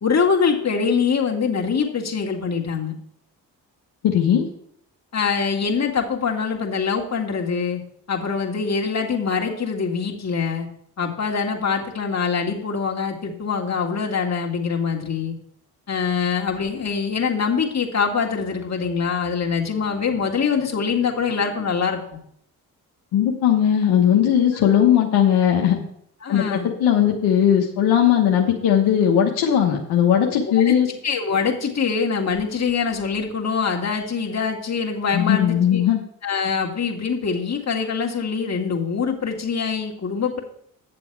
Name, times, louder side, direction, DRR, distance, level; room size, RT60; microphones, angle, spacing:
voice 1, 0.0-2.9 5.1-7.8 8.1-10.7 11.0-15.4 15.9-22.0 24.7-24.8 26.2-26.7 30.4-35.8 36.2-40.4, left 5 dB, 45° left, 1 dB, 1.9 m, -24 dB
voice 2, 4.0-4.5 23.1-25.8 26.3-30.9 35.1-36.0, left 9 dB, 85° left, 1 dB, 1.1 m, -18 dB
9.1 x 7.0 x 4.6 m, 0.67 s
supercardioid pair, 55°, 38 cm